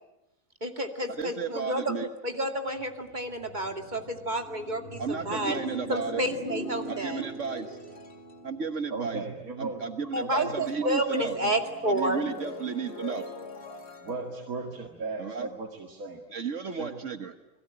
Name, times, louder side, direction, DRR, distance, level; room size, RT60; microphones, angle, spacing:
voice 1, 0.6-1.9 2.2-5.6 5.9-7.2 10.1-12.2, right 1 dB, 35° right, 5 dB, 2.6 m, -30 dB
voice 2, 1.2-2.1 5.0-6.2 6.9-7.8 8.4-9.2 9.6-11.4 11.9-13.3 15.2-15.5 16.3-17.3, right 6 dB, 60° right, 8 dB, 1.5 m, -33 dB
sound 1, 2.7-10.4 10.7-15.8, left 1 dB, 50° left, 2.6 m, -43 dB
voice 3, 8.9-9.8 10.2-11.6 11.8-11.9 14.0-16.2 16.7-17.0, right 3 dB, 85° right, 3 dB, 2.5 m, -37 dB
29.5 x 22.0 x 8.8 m, 0.96 s
omnidirectional pair, 1.4 m